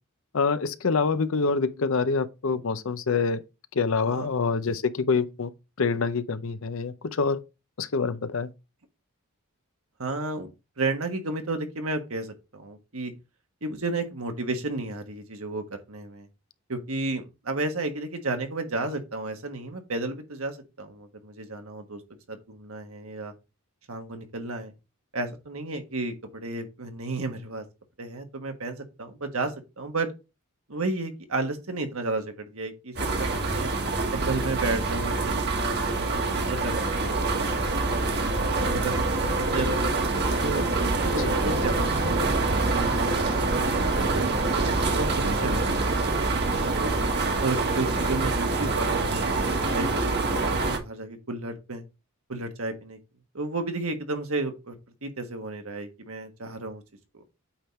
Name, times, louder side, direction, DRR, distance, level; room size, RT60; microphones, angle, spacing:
voice 1, 0.3-3.4 3.7-5.5 5.8-7.4 7.8-8.5 41.2-41.3, left 4 dB, 65° left, 0.6 m, -26 dB
voice 2, 10.0-10.5 10.8-13.1 13.6-16.3 16.7-22.0 22.3-23.3 23.9-24.7 25.1-27.6 28.0-30.1 30.7-33.7 34.1-38.1 38.6-39.9 40.4-42.9 43.3-43.6 43.9-44.5 44.9-46.9 47.4-50.4 50.8-51.8 52.3-53.0 53.3-54.7 55.0-56.8 57.1-57.2, right 2 dB, 70° right, 1.4 m, -33 dB
sound 1, 33.0-50.8, right 3 dB, 50° right, 1.4 m, -25 dB
8.7 x 3.6 x 4.2 m
head